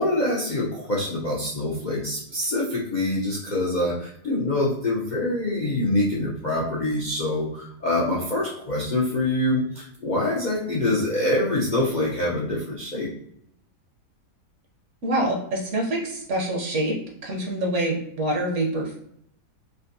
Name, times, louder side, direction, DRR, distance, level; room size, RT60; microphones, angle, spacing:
voice 1, 0.0-13.1, left 1 dB, 70° left, -5 dB, 0.4 m, -25 dB
voice 2, 15.0-17.0 17.2-19.0, right 1 dB, 60° right, 0 dB, 0.9 m, -26 dB
3.5 x 2.5 x 2.6 m, 0.72 s
omnidirectional pair, 1.8 m